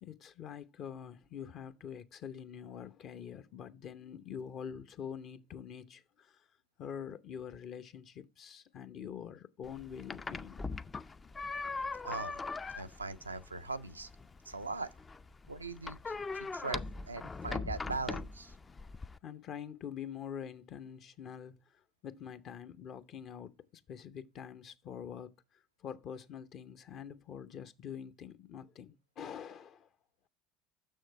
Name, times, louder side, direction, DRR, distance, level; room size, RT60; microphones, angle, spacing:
voice 1, 0.0-6.4 6.8-10.7 19.2-21.6 22.0-25.3 25.8-29.9, left 8 dB, 50° left, 0.7 m, -45 dB
sound 1, 9.6-19.2, left 4 dB, 25° left, 0.4 m, -41 dB
voice 2, 12.0-12.4 12.7-14.1 14.5-14.9 15.5-18.6, right 3 dB, 90° right, 0.3 m, -40 dB
6.5 x 6.4 x 4.5 m
figure-of-eight pair, 65°, 0 cm